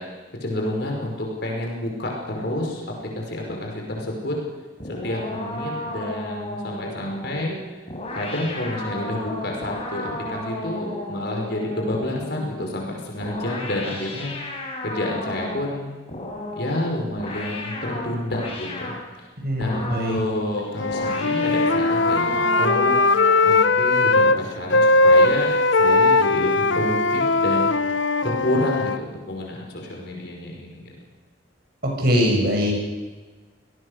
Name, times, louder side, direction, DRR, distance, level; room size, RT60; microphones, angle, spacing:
voice 1, 0.4-4.4 4.8-7.5 8.1-14.3 14.8-15.9 16.5-19.3 19.6-23.0 23.4-27.7 28.2-30.8, left 1 dB, 60° left, 0 dB, 5.6 m, -29 dB
sound 1, 4.8-12.6 13.2-15.7 16.1-19.0 19.6-20.3 20.9-23.7, left 1 dB, 35° left, 5.8 m, -33 dB
voice 2, 19.4-20.2 32.0-32.7, equal, 55° right, 1 dB, 7.6 m, -21 dB
Wind instrument woodwind instrument, 20.8-24.4 24.7-29.0, left 3 dB, 85° left, 1.1 m, -19 dB
27.0 x 19.0 x 6.7 m, 1.4 s
head